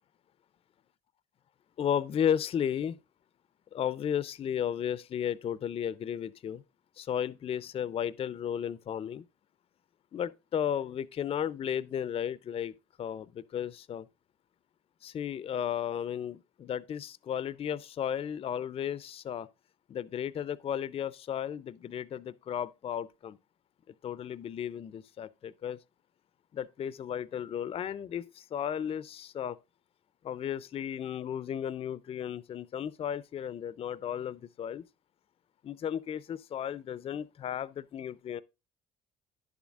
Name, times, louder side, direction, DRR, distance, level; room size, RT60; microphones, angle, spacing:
voice 1, 1.8-3.0 3.7-6.6 7.0-9.3 10.1-14.1 15.0-19.5 19.9-23.4 24.0-25.8 26.5-29.6 30.2-34.8 35.6-38.4, left 9 dB, 35° left, 0.4 m, -34 dB
10.5 x 7.1 x 2.4 m
cardioid pair, 110°, 17 cm